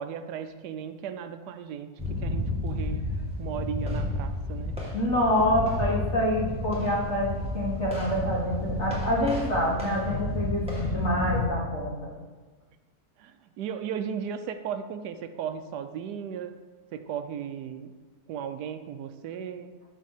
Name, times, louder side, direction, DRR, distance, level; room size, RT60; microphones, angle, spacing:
voice 1, 0.0-3.0 3.4-4.8 5.2-5.3 13.2-16.6 16.9-17.9 18.3-19.7, right 8 dB, 90° right, 9 dB, 1.2 m, -36 dB
sound 1, 2.0-11.4, left 1 dB, 5° right, 2.2 m, -31 dB
voice 2, 4.9-11.9, left 1 dB, 45° left, -4 dB, 2.4 m, -26 dB
13.0 x 4.5 x 6.6 m, 1.3 s
omnidirectional pair, 1.7 m